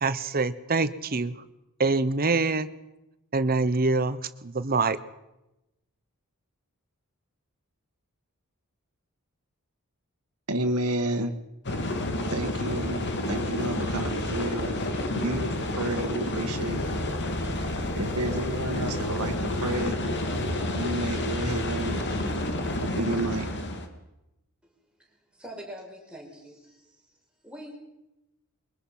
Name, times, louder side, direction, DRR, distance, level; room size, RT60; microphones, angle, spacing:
voice 1, 0.0-1.4 1.8-2.7 3.3-5.0, right 3 dB, 45° right, 13 dB, 1.0 m, -25 dB
voice 2, 10.5-11.4 12.3-14.8 15.1-17.1 17.4-20.0 20.7-22.5 22.8-23.5, right 1 dB, 80° right, 5 dB, 1.7 m, -31 dB
sound 1, 11.6-23.9, left 1 dB, 55° left, 2.5 m, -29 dB
voice 3, 25.0-27.0 27.4-27.8, equal, 5° right, -1 dB, 5.5 m, -44 dB
23.0 x 23.0 x 5.8 m, 0.94 s
head